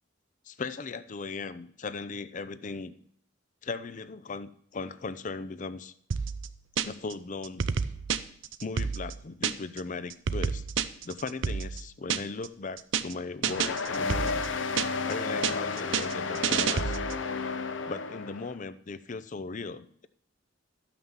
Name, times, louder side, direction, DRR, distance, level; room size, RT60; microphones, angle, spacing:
voice 1, 0.5-2.9 3.6-5.9 6.9-7.6 8.6-10.6 11.1-14.4 15.1-17.0 17.9-20.1, left 4 dB, 40° left, 13 dB, 0.5 m, -38 dB
sound 1, 6.1-7.1 7.4-9.8 10.1-12.5 12.8-13.1 13.4-15.1 15.4-17.2, right 6 dB, 90° right, 0.6 m, -30 dB
sound 2, 13.4-18.5, left 4 dB, 85° left, 1.0 m, -32 dB
13.0 x 6.0 x 7.2 m, 0.63 s
head